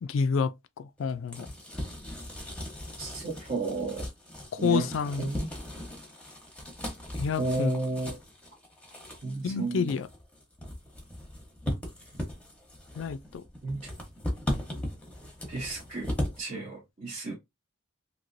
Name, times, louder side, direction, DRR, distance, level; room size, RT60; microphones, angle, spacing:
voice 1, 0.0-1.5 4.6-5.3 7.2-7.7 9.4-10.1 13.0-13.4, left 5 dB, 70° left, 0.3 m, -29 dB
sound 1, 1.0-16.4, left 1 dB, 5° left, 0.9 m, -37 dB
voice 2, 3.0-4.1 4.6-4.9 5.2-5.5 7.4-8.2 9.2-10.0 13.6-13.8 15.5-16.1 16.4-17.3, right 3 dB, 40° right, 0.8 m, -32 dB
3.1 x 2.8 x 2.6 m
head